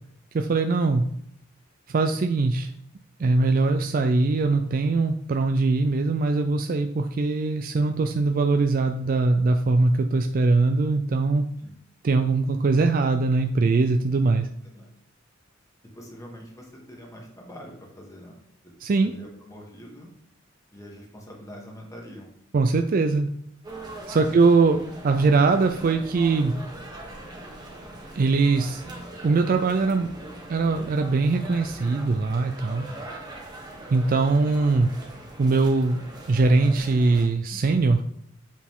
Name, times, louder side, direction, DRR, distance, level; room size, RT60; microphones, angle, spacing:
voice 1, 0.3-1.0 1.9-2.7 3.2-11.4 12.0-14.5 18.8-19.1 22.5-23.3 24.1-26.5 28.2-28.8 29.2-30.1 30.5-32.9 33.9-34.9 35.4-36.0 36.3-38.0, right 3 dB, 45° right, 6 dB, 0.4 m, -21 dB
voice 2, 15.9-18.4 18.6-18.7 19.0-20.1 20.7-22.3 24.1-24.4 32.8-33.1, equal, 15° left, -1 dB, 1.5 m, -44 dB
sound 1, 23.6-37.3, right 1 dB, 20° right, 1.3 m, -41 dB
8.2 x 4.1 x 3.7 m, 0.70 s
head